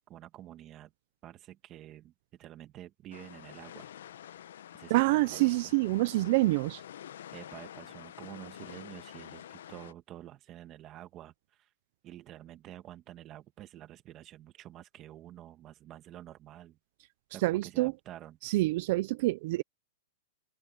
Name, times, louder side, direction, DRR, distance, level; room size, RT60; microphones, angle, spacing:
voice 1, 0.1-0.9 1.2-3.9 4.7-5.7 7.3-11.7 12.0-16.8 17.3-18.4, right 13 dB, 25° right, 1.5 m, -49 dB
sound 1, 3.1-9.9, left 10 dB, 75° left, 0.8 m, -48 dB
voice 2, 4.9-6.8 17.4-17.9 18.4-19.6, right 20 dB, 45° right, 0.5 m, -26 dB
open air
supercardioid pair, 165°, 0 cm